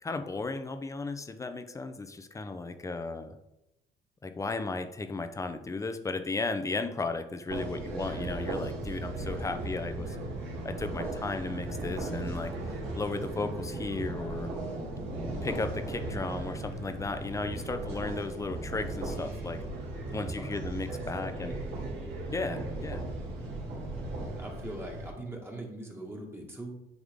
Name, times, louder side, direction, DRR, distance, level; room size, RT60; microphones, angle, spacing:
voice 1, 0.0-3.3 4.2-10.2 10.6-12.5 12.9-14.5 15.4-19.6 20.1-21.6 22.3-23.0, left 3 dB, 20° left, 8 dB, 0.6 m, -35 dB
sound 1, 7.5-25.1, right 2 dB, 85° right, 2.6 m, -37 dB
voice 2, 9.2-9.8 20.0-20.6 20.9-21.3 24.3-26.8, right 1 dB, 15° right, -1 dB, 1.7 m, -43 dB
9.9 x 3.6 x 3.6 m, 0.91 s
cardioid pair, 110°, 17 cm